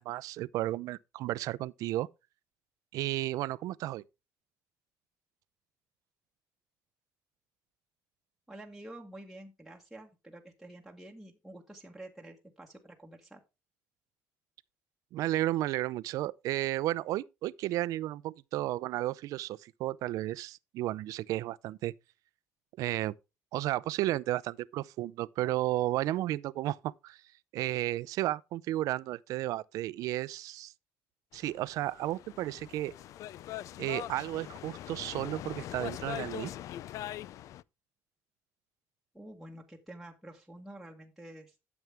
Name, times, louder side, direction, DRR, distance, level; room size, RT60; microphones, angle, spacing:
voice 1, 0.0-2.1 2.9-4.0 15.1-21.9 22.8-23.1 23.5-27.2 27.5-30.7 31.3-32.9 33.8-36.5, right 15 dB, 80° right, 0.5 m, -33 dB
voice 2, 8.5-13.4 39.1-41.5, right 1 dB, ahead, 1.4 m, -49 dB
sound 1, 31.3-37.6, left 12 dB, 65° left, 0.4 m, -42 dB
12.5 x 7.1 x 3.4 m
cardioid pair, 125°, 6 cm